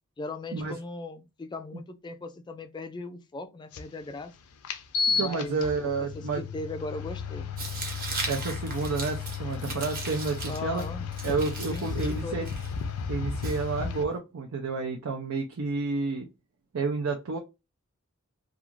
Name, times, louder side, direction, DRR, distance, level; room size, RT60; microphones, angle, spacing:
voice 1, 0.2-4.3 5.1-7.5 10.4-12.5, left 3 dB, 20° left, 0.3 m, -39 dB
sound 1, 3.7-3.8 4.6-14.0, left 5 dB, 85° left, 0.5 m, -33 dB
voice 2, 5.2-6.4 8.3-10.8 11.2-12.5 13.1-16.3 16.7-17.4, right 4 dB, 75° right, 0.5 m, -30 dB
Tearing, 7.6-14.2, right 3 dB, 45° right, 0.9 m, -39 dB
2.4 x 2.4 x 3.0 m
head